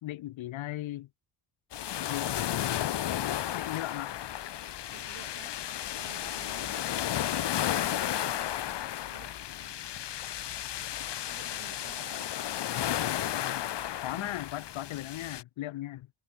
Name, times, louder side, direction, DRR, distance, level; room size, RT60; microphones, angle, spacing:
voice 1, 0.0-1.1 2.1-2.9 3.5-4.2 12.6-13.7 14.0-16.1, left 15 dB, 80° left, 1.9 m, -38 dB
sound 1, 1.7-15.4, left 11 dB, 65° left, 1.8 m, -33 dB
voice 2, 4.9-5.6 5.9-7.0 7.8-10.0 11.3-12.3 14.1-14.3, right 12 dB, 75° right, 3.9 m, -54 dB
cardioid pair, 100°, 46 cm